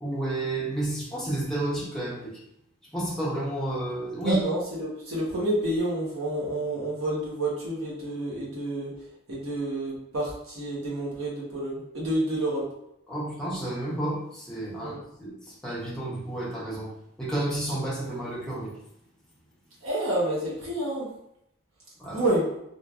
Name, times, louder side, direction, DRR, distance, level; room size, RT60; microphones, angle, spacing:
voice 1, 0.0-2.4 2.9-4.4 13.1-15.3 15.6-16.9 17.2-18.8 22.0-22.2, right 1 dB, ahead, -7 dB, 0.8 m, -31 dB
voice 2, 4.2-8.9 9.3-12.6 14.8-15.0 19.8-21.1 22.1-22.5, right 1 dB, 85° right, -6 dB, 1.0 m, -29 dB
3.1 x 2.5 x 2.3 m, 0.79 s
head